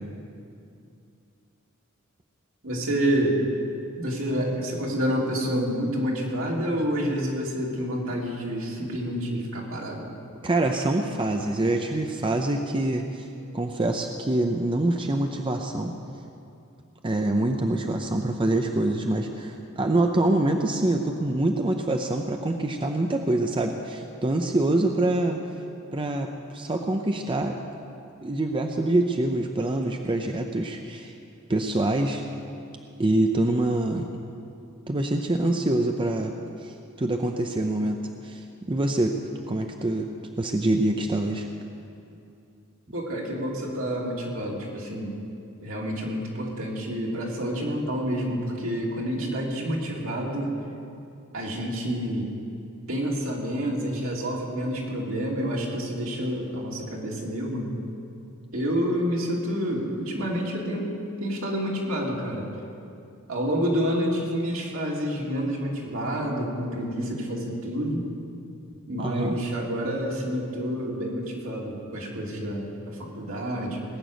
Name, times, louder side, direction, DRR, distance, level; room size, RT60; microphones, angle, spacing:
voice 1, 2.6-3.4 4.0-10.1 26.4-26.5 42.9-45.2 45.6-50.5 51.3-52.3 52.9-57.7 58.5-60.9 61.2-62.5 63.3-68.1 68.9-73.8, equal, 70° right, -2 dB, 2.7 m, -28 dB
voice 2, 10.4-13.3 13.5-15.9 17.0-25.4 25.9-27.6 28.2-31.1 31.5-32.2 33.0-34.1 34.9-36.3 36.6-38.0 38.2-39.2 39.5-40.1 40.4-41.5 69.0-69.4, right 2 dB, 25° right, 4 dB, 0.6 m, -25 dB
19.0 x 6.8 x 9.2 m, 2.6 s
head